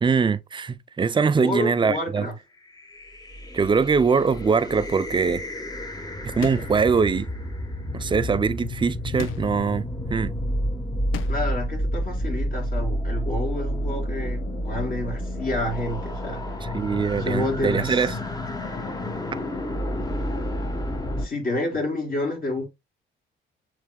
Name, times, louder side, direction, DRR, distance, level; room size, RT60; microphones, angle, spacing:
voice 1, 0.0-2.3 3.5-5.4 6.2-7.3 7.9-10.3 16.6-18.1, right 5 dB, 25° right, 0.5 m, -22 dB
voice 2, 1.3-2.3 11.3-16.4 17.2-18.1 21.2-22.6, left 1 dB, 45° left, 3.2 m, -29 dB
sound 1, 2.7-21.3, equal, 20° left, 1.2 m, -30 dB
sound 2, 6.4-6.9 9.2-9.7 11.1-11.6, left 12 dB, 85° left, 0.5 m, -36 dB
7.0 x 3.3 x 2.3 m
cardioid pair, 90°, 20 cm